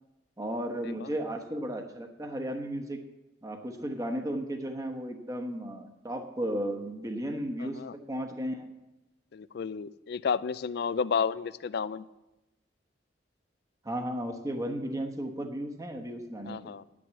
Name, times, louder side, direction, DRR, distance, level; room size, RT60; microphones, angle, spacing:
voice 1, 0.4-3.0 3.4-8.7 13.8-16.7, right 1 dB, 20° right, 4 dB, 1.1 m, -34 dB
voice 2, 7.6-7.9 9.3-12.0 16.5-16.8, left 6 dB, 60° left, 17 dB, 0.4 m, -32 dB
10.5 x 6.2 x 8.2 m, 0.99 s
head